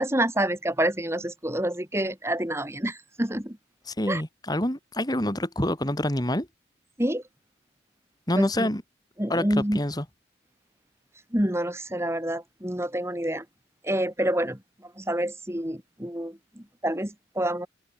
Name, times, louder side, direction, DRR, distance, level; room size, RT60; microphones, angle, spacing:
voice 1, 0.0-3.6 4.1-4.2 7.0-7.2 8.4-8.7 9.2-9.8 11.3-13.4 13.8-14.6 15.0-17.7, right 1 dB, 15° right, 2.9 m, -27 dB
voice 2, 3.9-6.5 8.3-8.8 9.3-10.0, left 1 dB, 20° left, 3.2 m, -27 dB
open air
head